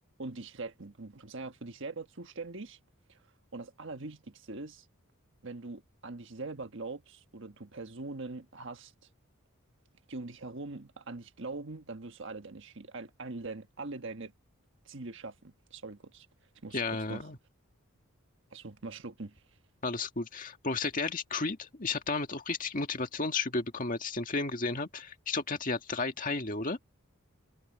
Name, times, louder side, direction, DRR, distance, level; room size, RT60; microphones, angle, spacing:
voice 1, 0.2-2.8 3.1-3.2 3.5-4.8 5.4-8.9 10.1-14.3 14.8-16.3 16.6-17.3 18.5-19.4, right 3 dB, 60° right, 1.4 m, -42 dB
voice 2, 16.7-17.4 19.8-26.8, left 3 dB, 40° left, 1.8 m, -33 dB
head